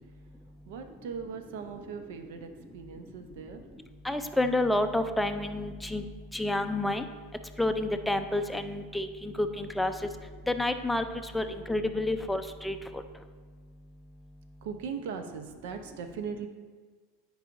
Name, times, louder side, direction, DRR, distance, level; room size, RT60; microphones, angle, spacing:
voice 1, 0.7-3.6 11.5-11.7 14.6-16.5, right 6 dB, 75° right, 7 dB, 0.7 m, -40 dB
voice 2, 4.0-6.0 6.3-7.0 7.6-9.9 10.5-11.0 11.3-12.8, left 1 dB, 5° left, 7 dB, 0.4 m, -29 dB
9.2 x 4.8 x 2.6 m, 1.5 s
supercardioid pair, 120°, 0 cm